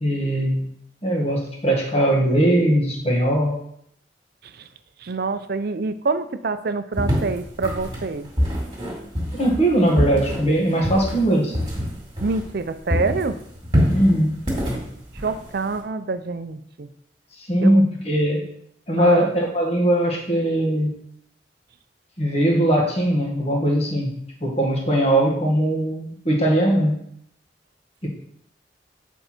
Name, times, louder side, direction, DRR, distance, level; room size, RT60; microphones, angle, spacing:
voice 1, 0.0-0.7 1.0-3.6 9.3-11.5 13.9-14.3 17.4-18.4 18.9-20.9 22.2-27.0 28.0-28.1, right 1 dB, 35° left, -1 dB, 1.7 m, -20 dB
voice 2, 5.0-8.3 12.2-13.4 15.2-16.9 17.6-17.8 19.0-19.3, right 3 dB, 60° right, 11 dB, 0.5 m, -26 dB
sound 1, 7.0-12.6 12.9-15.8, equal, 25° right, 2.3 m, -25 dB
7.9 x 4.6 x 4.4 m, 0.69 s
head